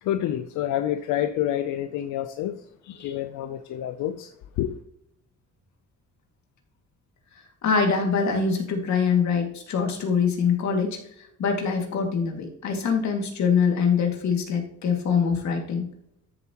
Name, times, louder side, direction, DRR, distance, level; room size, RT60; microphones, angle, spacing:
voice 1, 0.0-2.6 3.0-4.3 4.6-4.8, left 11 dB, 90° left, 0.6 m, -28 dB
voice 2, 7.6-15.9, left 6 dB, 65° left, 2.2 m, -24 dB
13.5 x 7.2 x 3.0 m
cardioid pair, 90°, 30 cm